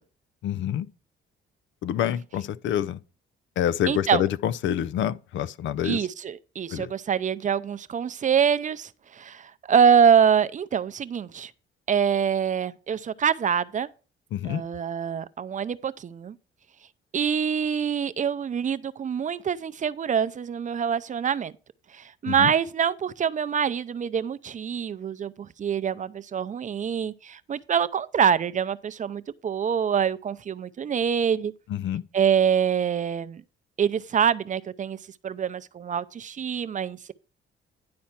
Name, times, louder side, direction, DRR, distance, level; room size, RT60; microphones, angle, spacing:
voice 1, 0.4-0.9 1.8-3.0 3.6-6.1 6.7-6.9 14.3-14.6 22.3-22.5 31.7-32.0, left 10 dB, 70° left, 0.5 m, -27 dB
voice 2, 3.9-4.2 5.8-11.5 11.9-13.9 14.4-16.4 17.1-21.5 21.9-31.5 32.1-33.4 33.8-35.0 35.2-37.1, right 7 dB, 40° right, 0.5 m, -25 dB
10.5 x 4.3 x 5.8 m
cardioid pair, 90°, 20 cm